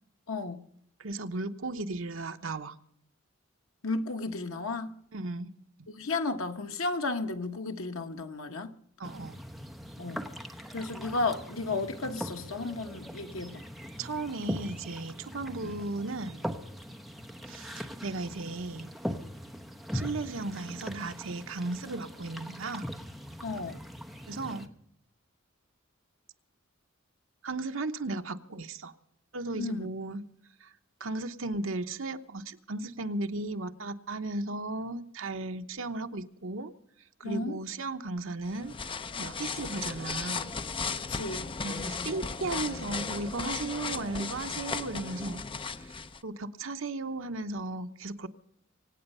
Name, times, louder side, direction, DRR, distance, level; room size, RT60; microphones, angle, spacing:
voice 1, 0.3-0.6 3.8-4.9 6.0-8.7 10.0-10.2 10.7-13.6 15.6-15.7 23.4-23.8 29.5-29.9 37.2-37.6 41.1-41.5, left 3 dB, 85° left, 1.2 m, -33 dB
voice 2, 1.0-2.8 5.1-5.5 9.0-9.4 14.0-16.5 17.5-18.9 19.9-22.9 24.3-24.7 27.4-28.9 29.3-30.2 30.6-30.7 31.0-36.7 37.2-38.8 39.2-40.5 41.6-45.5 45.8-45.9 46.2-48.3, right 2 dB, 70° right, 0.9 m, -35 dB
sound 1, 9.0-24.7, equal, ahead, 0.9 m, -41 dB
sound 2, 38.4-46.2, left 5 dB, 25° left, 0.5 m, -36 dB
24.5 x 9.0 x 5.5 m
head